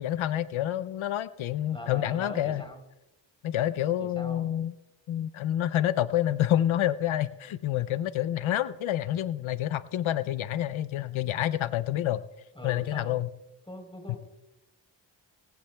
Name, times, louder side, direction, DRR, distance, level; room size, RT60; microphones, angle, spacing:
voice 1, 0.0-2.6 3.4-4.7 5.1-12.2 12.6-13.3 14.1-14.2, left 12 dB, 90° left, 14 dB, 0.6 m, -28 dB
voice 2, 1.7-2.8 4.0-4.4 12.6-13.2 13.7-14.2, left 1 dB, 10° left, 3 dB, 3.6 m, -41 dB
20.5 x 15.5 x 2.2 m, 0.93 s
wide cardioid pair, 110°, 46 cm